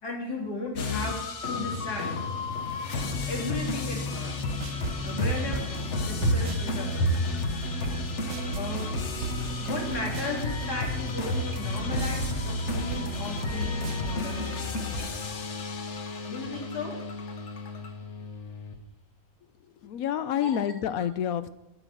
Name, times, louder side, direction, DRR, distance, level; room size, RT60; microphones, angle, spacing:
voice 1, 0.0-1.2 1.5-2.2 3.3-4.4 5.0-5.6 6.0-7.3 8.5-9.0 9.6-15.1 16.3-17.0 20.3-20.6, equal, 90° left, -1 dB, 3.6 m, -32 dB
sound 1, 0.8-18.8, left 3 dB, 50° left, 1.4 m, -32 dB
sound 2, 3.0-15.1, right 6 dB, 60° right, 0.9 m, -39 dB
voice 2, 19.8-21.5, left 9 dB, 70° left, 14 dB, 1.1 m, -28 dB
10.0 x 9.0 x 7.7 m, 0.92 s
omnidirectional pair, 1.6 m